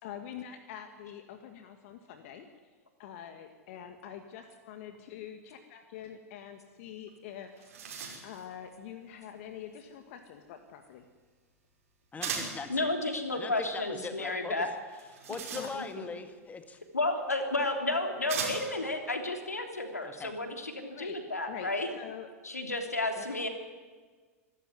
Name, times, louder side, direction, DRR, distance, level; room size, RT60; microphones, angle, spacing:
voice 1, 0.0-2.5 3.0-7.7 8.2-11.0 15.2-15.3 15.6-15.7 20.9-21.2 21.5-22.3 23.2-23.3, left 9 dB, 55° left, 7 dB, 1.9 m, -45 dB
sound 1, 7.1-7.2 7.4-8.4 12.2-12.7 14.9-16.1 17.2-17.3 18.3-18.8, right 6 dB, 65° right, 5.6 m, -37 dB
voice 2, 12.1-13.0 13.3-14.7 15.3-16.8 20.0-20.3, left 4 dB, 20° left, 8 dB, 1.9 m, -40 dB
voice 3, 12.7-14.7 15.7-15.8 16.9-21.9 22.4-23.5, left 2 dB, 90° left, 5 dB, 3.1 m, -32 dB
25.0 x 13.5 x 9.6 m, 1.4 s
figure-of-eight pair, 90°, 8 cm